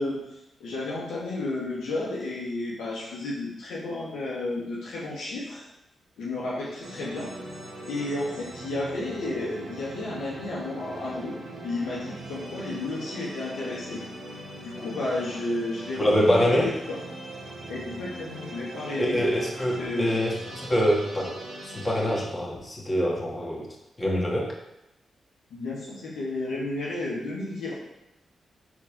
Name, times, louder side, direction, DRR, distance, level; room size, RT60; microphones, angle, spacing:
voice 1, 0.0-5.6 6.2-7.3 7.8-14.0 14.6-17.0 17.7-19.2 19.7-20.1 25.5-27.7, left 2 dB, 80° left, -5 dB, 1.9 m, -32 dB
sound 1, 6.8-22.2, right 1 dB, 90° right, 2.6 m, -40 dB
voice 2, 16.0-16.7 19.0-21.3 21.6-23.7 24.0-24.5, equal, 30° left, -2 dB, 2.6 m, -25 dB
12.0 x 4.3 x 3.8 m, 0.87 s
supercardioid pair, 40°, 0 cm